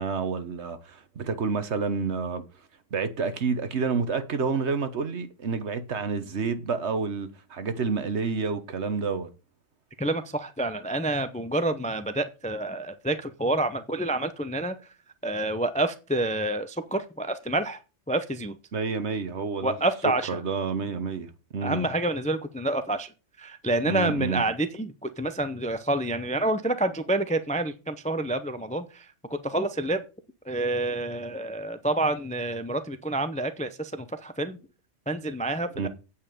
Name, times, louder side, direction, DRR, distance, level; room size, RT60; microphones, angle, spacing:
voice 1, 0.0-2.4 2.9-9.3 18.7-19.7 20.3-21.9 23.9-24.4 35.8-35.9, right 5 dB, 65° right, 1.4 m, -29 dB
voice 2, 10.0-14.8 15.2-17.8 18.1-18.6 19.6-20.4 21.6-23.1 23.4-30.0 30.4-34.6 35.1-35.9, right 2 dB, 10° left, 0.4 m, -28 dB
8.6 x 5.6 x 6.8 m
omnidirectional pair, 1.3 m